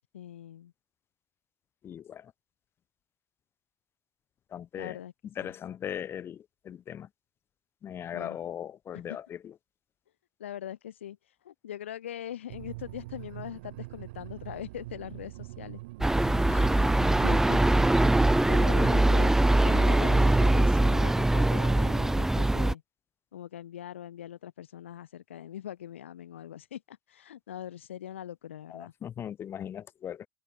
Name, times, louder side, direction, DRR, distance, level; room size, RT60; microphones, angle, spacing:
voice 1, 0.1-0.7 4.8-5.1 5.4-5.5 8.1-8.4 9.1-9.2 10.4-11.2 11.4-15.8 17.2-17.8 18.5-19.3 19.6-22.8 23.3-28.9, left 11 dB, 75° left, 7.9 m, -41 dB
voice 2, 1.8-2.3 4.5-5.0 5.2-7.1 7.8-9.5 16.5-17.2 18.6-19.0 28.7-30.3, left 9 dB, 35° left, 1.4 m, -39 dB
sound 1, 12.5-20.4, right 20 dB, 65° right, 6.2 m, -43 dB
sound 2, 16.0-22.7, right 1 dB, 5° right, 0.6 m, -22 dB
figure-of-eight pair, 70°, 7 cm